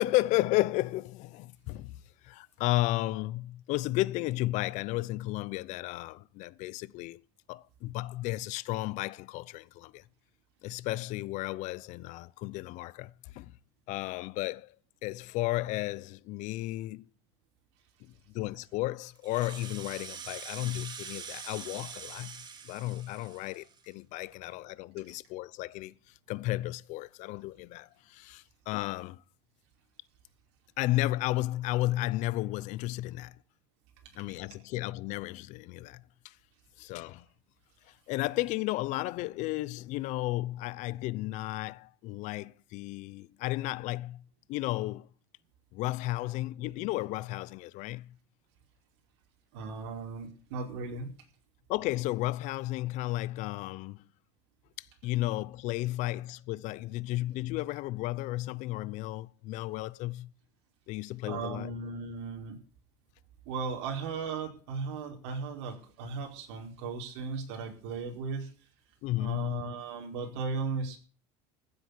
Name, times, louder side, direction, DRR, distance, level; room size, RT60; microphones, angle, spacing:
voice 1, 0.0-2.0 2.2-7.2 7.5-10.0 10.6-13.6 13.9-14.7 15.0-17.1 18.0-29.2 30.8-33.4 34.1-36.4 36.8-37.2 37.9-45.1 45.7-48.2 51.7-54.1 54.8-60.3 60.9-61.7 69.0-69.6, left 17 dB, 60° left, 0.8 m, -33 dB
Rattle (instrument), 19.2-23.9, right 6 dB, 30° right, 2.4 m, -44 dB
voice 2, 49.5-51.1 61.2-62.6 63.4-68.5 69.2-71.0, right 4 dB, 85° right, 5.0 m, -36 dB
15.5 x 8.1 x 8.4 m
cardioid pair, 130°, 14 cm